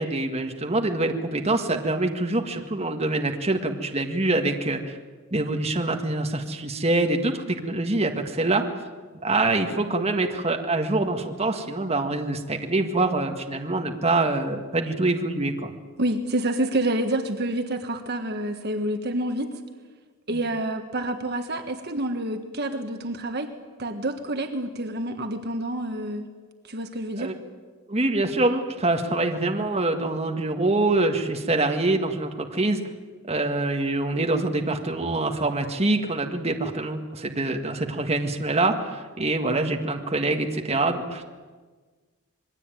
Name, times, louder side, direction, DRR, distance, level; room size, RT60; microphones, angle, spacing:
voice 1, 0.0-5.0 5.3-8.6 9.2-15.7 20.3-20.4 27.2-27.3 27.9-32.8 33.3-41.2, right 2 dB, 30° right, 3 dB, 1.7 m, -25 dB
voice 2, 16.0-19.5 20.3-23.5 23.8-26.3 26.6-27.3, right 1 dB, 50° right, 6 dB, 1.5 m, -28 dB
27.0 x 21.5 x 9.2 m, 1.4 s
head